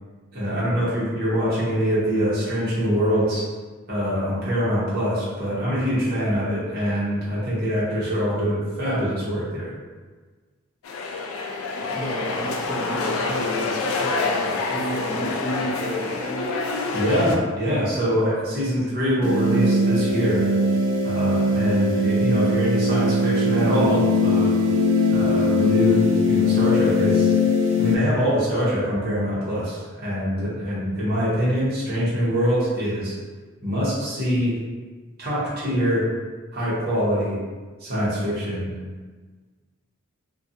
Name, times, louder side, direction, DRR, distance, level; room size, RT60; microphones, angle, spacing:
voice 1, 0.3-3.4 3.9-9.7 16.9-20.4 21.0-24.5 25.1-27.3 27.8-33.1 33.6-34.6 35.2-36.0 36.5-37.4 37.8-38.7, equal, 45° right, -8 dB, 0.8 m, -24 dB
sound 1, 10.8-17.4, left 3 dB, 70° left, 0.3 m, -27 dB
voice 2, 11.8-16.6, equal, 10° right, -11 dB, 0.8 m, -31 dB
sound 2, 19.2-28.0, left 2 dB, 65° right, 0.4 m, -20 dB
2.4 x 2.3 x 2.7 m, 1.4 s
head